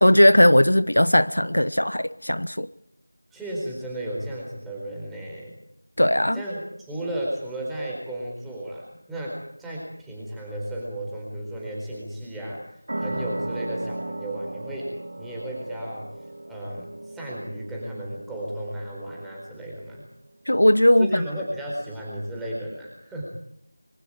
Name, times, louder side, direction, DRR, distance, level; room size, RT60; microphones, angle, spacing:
voice 1, 0.0-2.7 6.0-6.4 20.5-21.2, left 1 dB, 80° left, 15 dB, 1.0 m, -18 dB
voice 2, 3.3-5.6 6.3-12.6 13.0-16.1 16.5-20.0 21.0-23.2, right 1 dB, ahead, -4 dB, 4.3 m, -34 dB
sound 1, 12.9-20.1, right 1 dB, 50° right, 2.1 m, -36 dB
26.5 x 25.0 x 5.0 m, 0.72 s
figure-of-eight pair, 170°, 0 cm